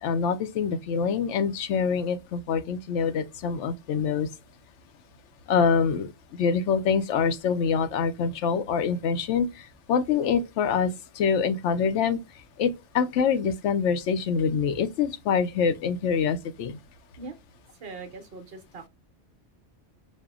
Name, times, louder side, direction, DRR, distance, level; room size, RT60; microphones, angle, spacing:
voice 1, 0.0-4.3 5.5-6.1 6.4-9.5 9.9-10.9 11.2-12.2 12.6-16.8, left 6 dB, 80° left, 0.9 m, -25 dB
voice 2, 17.8-18.9, right 3 dB, 60° right, 0.9 m, -41 dB
5.4 x 2.1 x 2.3 m
omnidirectional pair, 1.2 m